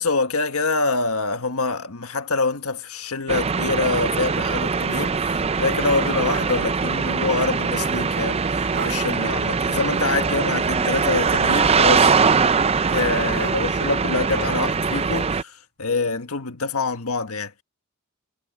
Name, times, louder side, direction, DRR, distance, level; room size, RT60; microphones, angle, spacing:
voice 1, 0.0-12.1 12.9-17.6, left 3 dB, 80° left, 1.5 m, -25 dB
sound 1, 3.3-15.4, right 5 dB, 30° right, 0.5 m, -22 dB
sound 2, 5.6-6.6 7.0-7.1 8.3-8.4 8.7-9.0 11.2-11.9 13.3-13.9 14.3-15.1, right 5 dB, 55° right, 3.4 m, -35 dB
head